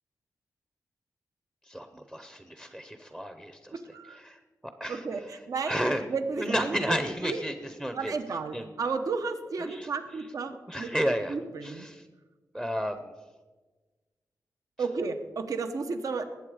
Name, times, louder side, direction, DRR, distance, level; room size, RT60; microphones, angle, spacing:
voice 1, 1.6-3.8 4.1-4.4 4.8-5.0 5.7-6.0 6.4-8.1 8.5-8.7 9.6-9.9 10.7-11.3 11.6-12.0 12.5-13.1, equal, 10° right, 8 dB, 0.7 m, -32 dB
voice 2, 3.7-4.2 4.9-5.8 6.1-7.0 7.2-7.4 8.0-10.9 11.3-11.9 14.8-16.2, right 4 dB, 65° right, 8 dB, 1.0 m, -33 dB
19.5 x 8.2 x 5.0 m, 1.3 s
wide cardioid pair, 140°, 6 cm